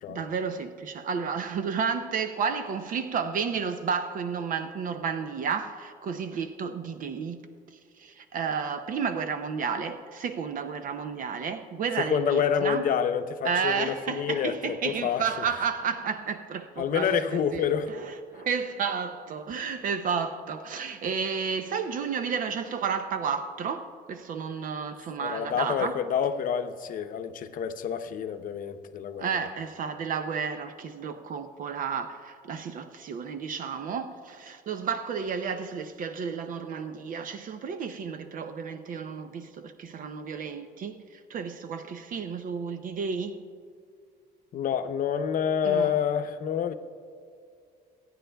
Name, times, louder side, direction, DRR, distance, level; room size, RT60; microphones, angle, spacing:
voice 1, 0.1-7.4 7.7-12.8 13.4-26.0 29.2-43.4 45.6-46.0, right 6 dB, 55° right, 0.6 m, -32 dB
voice 2, 12.0-15.5 16.8-17.9 18.3-18.4 25.2-29.4 44.5-46.7, left 8 dB, 55° left, 0.7 m, -28 dB
24.0 x 9.3 x 2.3 m
cardioid pair, 110°, 17 cm